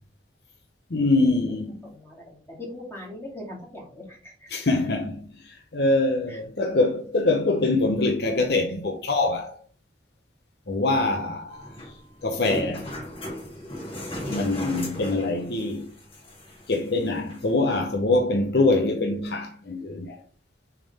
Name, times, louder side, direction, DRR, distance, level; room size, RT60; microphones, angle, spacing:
voice 1, 0.9-1.8 4.5-9.6 10.7-11.9 12.2-12.9 14.3-15.9 16.7-20.2, left 2 dB, 60° left, 0.8 m, -24 dB
voice 2, 1.8-4.7 6.3-6.4, left 1 dB, 10° left, 2.6 m, -41 dB
sound 1, 11.5-17.5, left 1 dB, 30° left, 2.0 m, -37 dB
6.8 x 3.6 x 4.1 m
head